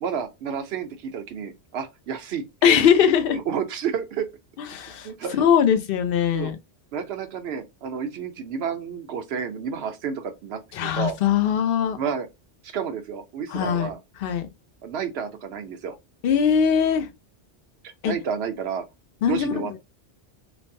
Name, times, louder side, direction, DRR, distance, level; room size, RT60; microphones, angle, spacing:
voice 1, 0.0-2.9 3.3-4.3 5.0-5.4 6.3-6.5 6.9-11.2 12.0-12.3 12.6-14.0 14.8-16.0 17.8-18.9 19.2-19.8, right 7 dB, 70° right, 0.8 m, -30 dB
voice 2, 2.6-3.4 4.6-6.6 10.7-12.0 13.5-13.9 14.2-14.5 16.2-17.1 18.0-18.1 19.2-19.5, left 8 dB, 65° left, 0.7 m, -21 dB
3.2 x 2.1 x 2.6 m
omnidirectional pair, 1.1 m